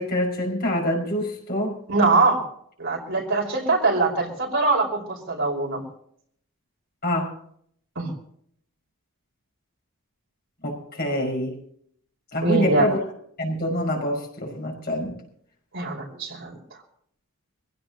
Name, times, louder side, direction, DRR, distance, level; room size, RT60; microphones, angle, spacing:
voice 1, 0.0-1.8 7.0-7.3 10.6-11.6 12.3-13.0 13.4-15.2, equal, 45° left, 0 dB, 5.5 m, -26 dB
voice 2, 1.9-2.4 2.8-5.8 7.9-8.1 12.4-12.9 15.7-16.5, right 3 dB, 60° right, -1 dB, 4.9 m, -22 dB
24.5 x 16.5 x 2.9 m, 0.64 s
head